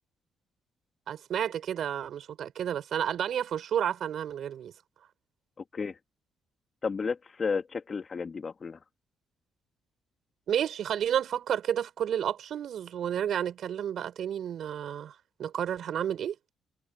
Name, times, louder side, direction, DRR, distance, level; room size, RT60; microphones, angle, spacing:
voice 1, 1.1-4.7 10.5-16.3, right 9 dB, 65° right, 4.8 m, -31 dB
voice 2, 6.8-8.8, left 5 dB, 40° left, 2.8 m, -32 dB
cardioid pair, 90°, 0 cm